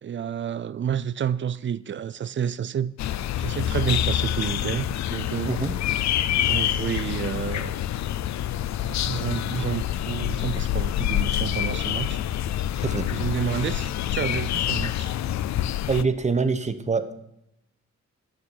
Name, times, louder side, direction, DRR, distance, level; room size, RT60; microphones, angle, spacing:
voice 1, 0.0-3.0 3.4-5.6 6.3-7.8 8.8-12.2 13.1-15.1, right 8 dB, 40° right, 0.5 m, -30 dB
sound 1, 3.0-16.0, left 11 dB, 70° left, 0.5 m, -26 dB
voice 2, 5.4-5.8 12.8-13.1 15.9-17.1, right 4 dB, 25° right, 0.9 m, -25 dB
11.0 x 8.7 x 4.6 m
cardioid pair, 85°, 29 cm